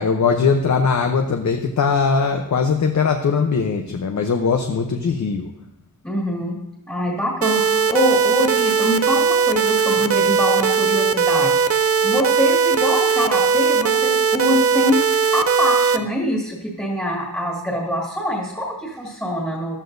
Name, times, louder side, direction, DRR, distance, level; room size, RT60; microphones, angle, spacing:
voice 1, 0.0-5.5, left 5 dB, 50° left, 5 dB, 0.8 m, -20 dB
voice 2, 6.0-6.6 6.9-19.8, equal, 5° left, -3 dB, 2.0 m, -24 dB
sound 1, 7.4-16.0, right 6 dB, 40° right, 0.5 m, -18 dB
14.5 x 12.5 x 2.6 m, 0.85 s
wide cardioid pair, 175°, 37 cm